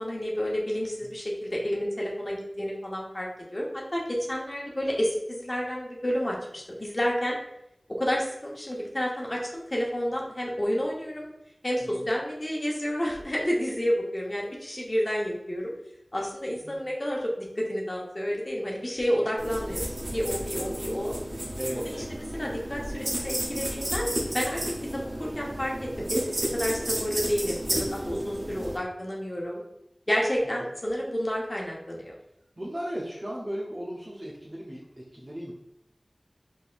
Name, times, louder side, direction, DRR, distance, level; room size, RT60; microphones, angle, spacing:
voice 1, 0.0-7.3 7.9-11.3 11.6-15.7 16.1-21.1 21.7-22.0 22.3-24.1 24.3-24.6 24.9-29.6 30.1-32.1, equal, 40° left, -3 dB, 0.9 m, -30 dB
sound 1, 19.4-28.8, right 1 dB, 75° right, 0.8 m, -32 dB
voice 2, 21.6-22.1 30.4-30.7 32.6-35.5, equal, 35° right, -5 dB, 0.7 m, -36 dB
4.2 x 3.5 x 2.5 m, 0.82 s
wide cardioid pair, 45°, 0 cm